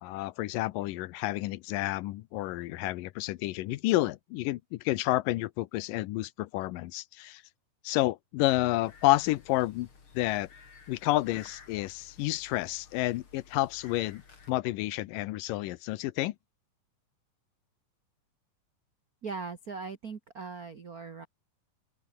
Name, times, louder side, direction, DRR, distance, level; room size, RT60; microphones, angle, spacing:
voice 1, 0.0-7.4 7.8-9.9 10.1-10.5 10.9-14.2 14.5-16.4, left 17 dB, 80° left, 2.3 m, -30 dB
sound 1, 8.8-14.5, left 5 dB, 40° left, 3.9 m, -54 dB
voice 2, 19.2-21.3, right 4 dB, 80° right, 0.8 m, -39 dB
open air
omnidirectional pair, 4.0 m